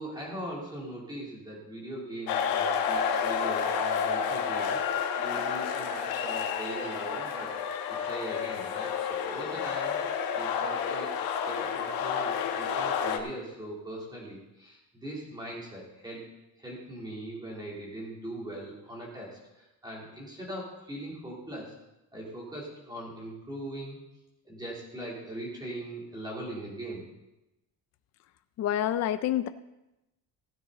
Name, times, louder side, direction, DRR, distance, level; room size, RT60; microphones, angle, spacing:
voice 1, 0.0-4.8 5.2-7.6 7.9-10.0 10.3-16.3 16.6-21.7 22.1-24.0 24.4-27.1, right 1 dB, 10° right, -4 dB, 3.3 m, -40 dB
sound 1, 2.3-13.2, left 7 dB, 75° left, 1.2 m, -30 dB
voice 2, 28.6-29.5, left 11 dB, 45° left, 10 dB, 0.5 m, -27 dB
16.0 x 9.5 x 4.0 m, 0.93 s
cardioid pair, 175°, 36 cm